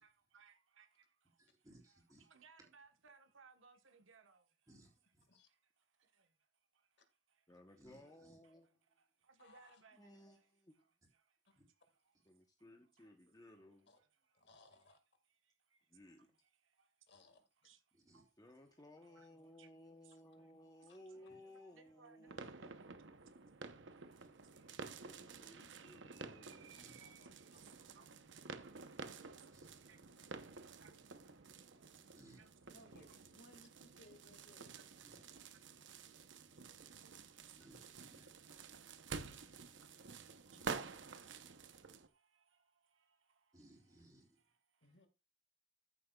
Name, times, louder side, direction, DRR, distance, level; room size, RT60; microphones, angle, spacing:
voice 1, 0.0-1.1 2.2-4.5 5.5-5.6 7.7-8.5 9.0-10.5 10.7-10.9 11.1-11.2 11.5-11.6 12.7-13.1 13.6-13.7 14.0-14.1 15.7-15.8 16.2-16.5 16.8-16.9 17.6-17.8 18.1-18.3 18.8-20.5 20.8-22.5 23.6-23.7 24.1-24.3 24.5-24.7 25.8-26.4 27.4-28.8 29.2-29.5 29.8-30.9 31.2-31.8 32.4-32.5 34.6-35.1 35.3-36.4 36.6-37.0 37.3-37.7 38.0-38.1 38.7-39.5 39.8-40.7 41.4-43.6 43.9-44.0 44.4-44.5, right 5 dB, 85° right, 1.2 m, -68 dB
voice 2, 1.4-2.2 4.7-5.3 7.8-8.4 11.6-11.7 17.9-18.2 24.2-24.3 26.8-27.0 29.5-29.7 31.9-32.4 35.0-35.3 37.6-38.2 40.6-40.8 43.5-44.4, right 1 dB, 20° right, 3.5 m, -64 dB
voice 3, 7.5-8.7 9.9-10.9 12.3-13.9 15.9-16.3 18.4-23.2 25.0-26.8 28.0-28.1, left 1 dB, 20° left, 0.9 m, -60 dB
voice 4, 9.4-9.8 13.9-14.0 14.3-15.0 17.1-17.7 20.9-21.0 26.7-27.7 28.8-29.1 29.4-29.6 32.7-34.9 37.7-37.9 40.5-41.0 44.8-45.1, left 2 dB, 60° left, 1.9 m, -65 dB
sound 1, 22.3-42.1, right 5 dB, 65° right, 0.8 m, -51 dB
14.0 x 7.7 x 2.3 m
head